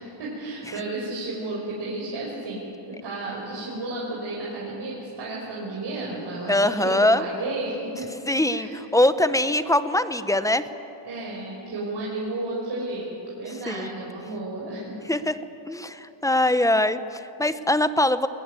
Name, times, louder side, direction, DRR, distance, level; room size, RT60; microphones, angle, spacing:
voice 1, 0.0-8.0 8.5-8.8 11.0-13.1 13.4-14.9 16.3-16.5, right 2 dB, 55° right, -5 dB, 5.5 m, -32 dB
voice 2, 6.5-7.2 8.3-10.6 13.7-13.9 15.1-15.3 15.7-18.3, left 1 dB, 5° left, 12 dB, 0.8 m, -22 dB
21.0 x 20.0 x 9.7 m, 3.0 s
cardioid pair, 125°, 48 cm